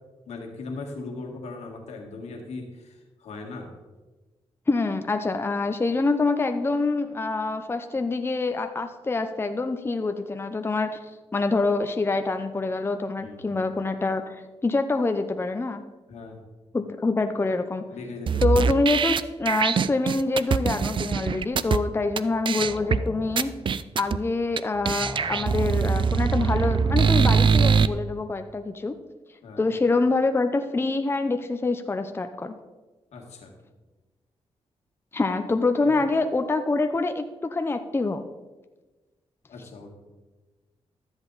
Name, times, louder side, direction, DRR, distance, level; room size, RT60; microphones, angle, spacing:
voice 1, 0.3-3.7 13.2-13.5 16.1-16.4 17.9-18.6 29.4-29.7 33.1-33.5 35.8-36.1 39.5-39.9, left 3 dB, 85° left, 1 dB, 1.9 m, -39 dB
voice 2, 4.7-11.0 11.3-15.8 16.7-17.9 18.4-23.5 24.0-29.0 29.6-32.6 35.1-38.2, left 3 dB, 20° left, 7 dB, 0.6 m, -25 dB
sound 1, 18.3-21.8 22.2-22.3 22.4-23.0 23.4-24.2 24.6-24.7 24.8-27.9, right 6 dB, 50° right, 0.4 m, -22 dB
sound 2, 22.6-24.5 24.7-27.7, right 1 dB, 10° right, 0.9 m, -41 dB
13.0 x 7.9 x 4.0 m, 1.2 s
cardioid pair, 85°, 11 cm